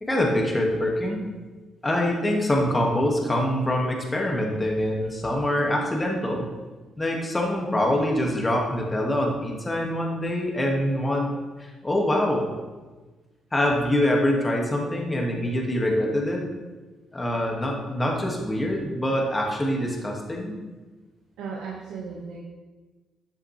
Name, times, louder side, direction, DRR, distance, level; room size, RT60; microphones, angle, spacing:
voice 1, 0.0-1.2 1.8-6.5 7.0-11.3 11.6-12.5 13.5-16.5 17.1-20.6, left 1 dB, 20° left, 0 dB, 2.0 m, -24 dB
voice 2, 21.4-22.4, right 5 dB, 90° right, -5 dB, 1.6 m, -35 dB
13.0 x 7.4 x 3.3 m, 1.3 s
cardioid pair, 90°, 0 cm